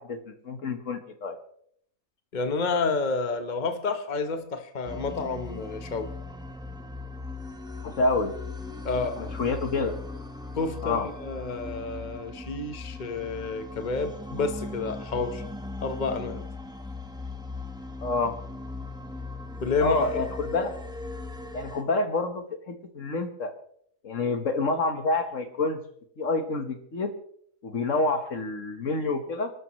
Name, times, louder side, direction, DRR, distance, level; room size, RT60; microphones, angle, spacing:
voice 1, 0.0-1.4 7.8-8.3 9.2-10.0 10.8-11.1 18.0-18.4 19.8-20.8 21.5-23.5 24.0-25.8 26.2-27.1 27.6-29.5, left 3 dB, 65° left, 7 dB, 1.7 m, -28 dB
voice 2, 2.3-6.1 8.8-9.2 10.5-15.4 15.8-16.4 19.6-20.2, left 4 dB, 35° left, 7 dB, 1.2 m, -30 dB
sound 1, 4.8-21.8, left 3 dB, 5° right, 1.2 m, -38 dB
30.0 x 12.5 x 3.1 m, 0.66 s
omnidirectional pair, 1.4 m